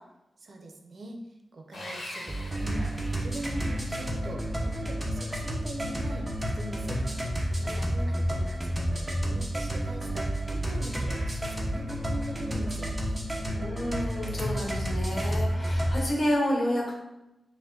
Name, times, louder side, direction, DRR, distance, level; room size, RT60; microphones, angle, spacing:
voice 1, 0.4-1.2 1.5-7.0 7.6-13.3, right 1 dB, 55° right, 3 dB, 0.6 m, -41 dB
Sawing, 1.7-3.6, left 1 dB, 75° left, 0.9 m, -42 dB
sound 1, 2.3-16.1, equal, 10° right, 0.7 m, -30 dB
voice 2, 7.5-8.1 13.5-16.9, equal, 40° left, -2 dB, 1.2 m, -30 dB
4.7 x 2.1 x 3.8 m, 0.94 s
wide cardioid pair, 105°, 0 cm